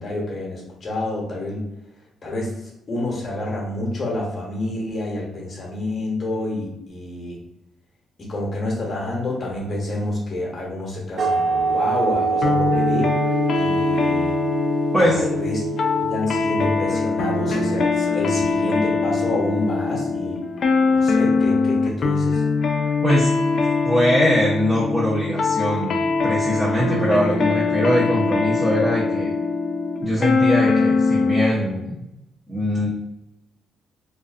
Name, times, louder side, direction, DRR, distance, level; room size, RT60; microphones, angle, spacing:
voice 1, 0.0-1.6 2.2-2.5 2.9-7.4 8.2-13.2 13.5-14.4 15.0-15.6 16.1-20.4 20.9-22.4, left 1 dB, 40° left, -3 dB, 0.9 m, -28 dB
sound 1, 11.2-16.6, right 5 dB, 50° right, 0.4 m, -25 dB
sound 2, 12.4-31.5, left 4 dB, 55° left, 0.3 m, -22 dB
voice 2, 23.8-29.3 30.0-32.1 32.5-32.9, equal, 10° right, -6 dB, 0.6 m, -22 dB
2.4 x 2.3 x 2.3 m, 0.86 s
cardioid pair, 90°, 0 cm